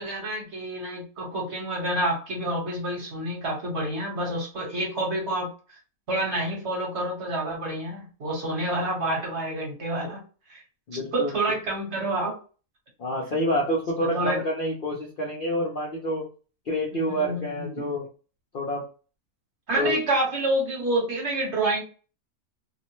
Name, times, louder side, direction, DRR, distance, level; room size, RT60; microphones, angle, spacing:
voice 1, 0.0-5.5 6.1-10.2 10.5-10.6 10.9-12.4 14.0-14.4 16.9-17.8 19.7-21.8, right 1 dB, 50° right, -2 dB, 1.3 m, -28 dB
voice 2, 10.9-11.4 13.0-16.3 16.6-18.0 18.5-18.8 19.8-20.0, equal, 55° left, -2 dB, 0.6 m, -28 dB
2.8 x 2.1 x 2.9 m, 0.36 s
omnidirectional pair, 1.6 m